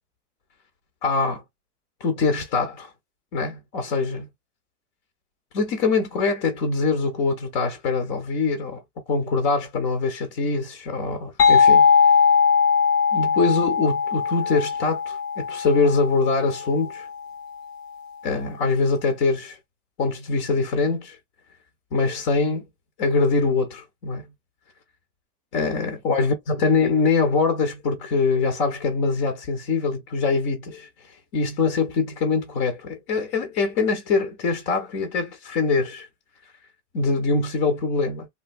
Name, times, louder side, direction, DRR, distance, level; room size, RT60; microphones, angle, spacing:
voice 1, 1.0-1.4 2.0-2.9 3.3-4.3 5.5-8.8 9.1-11.9 13.1-17.1 18.2-19.6 20.0-21.2 21.9-22.6 23.0-24.2 25.5-30.9 31.3-36.1 36.9-38.3, left 4 dB, 20° left, 0.4 m, -23 dB
sound 1, 11.4-16.9, left 6 dB, 85° left, 0.8 m, -19 dB
3.3 x 2.4 x 2.5 m
hypercardioid pair, 140°, 46 cm